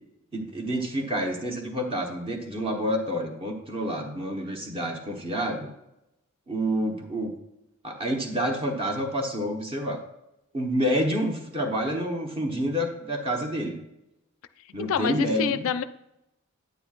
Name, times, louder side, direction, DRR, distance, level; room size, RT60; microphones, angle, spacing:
voice 1, 0.3-5.7 6.5-7.3 7.8-10.0 10.5-13.8 14.7-15.7, equal, 25° right, 3 dB, 1.0 m, -28 dB
voice 2, 14.8-15.8, left 7 dB, 65° left, 12 dB, 0.4 m, -27 dB
9.2 x 9.0 x 2.4 m, 0.87 s
head